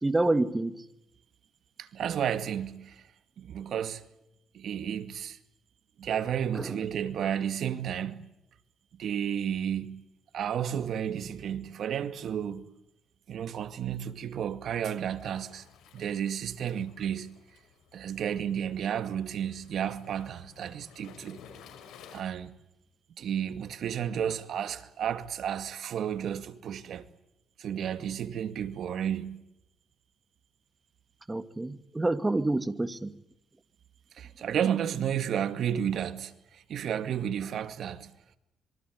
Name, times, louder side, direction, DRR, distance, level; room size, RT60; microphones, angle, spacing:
voice 1, 0.0-0.8 6.5-6.8 10.6-10.7 31.3-33.2, right 2 dB, 15° right, 2.2 m, -28 dB
voice 2, 1.8-3.0 3.4-4.0 4.5-5.4 6.0-8.3 9.0-10.0 10.3-12.6 13.3-15.6 15.9-17.3 17.9-21.4 22.1-22.6 23.2-27.0 27.6-29.4 34.1-38.1, right 9 dB, 65° right, 2.3 m, -32 dB
Waves surf, 15.1-22.2, left 7 dB, 85° left, 6.0 m, -54 dB
25.5 x 24.0 x 9.5 m
cardioid pair, 90°, 0 cm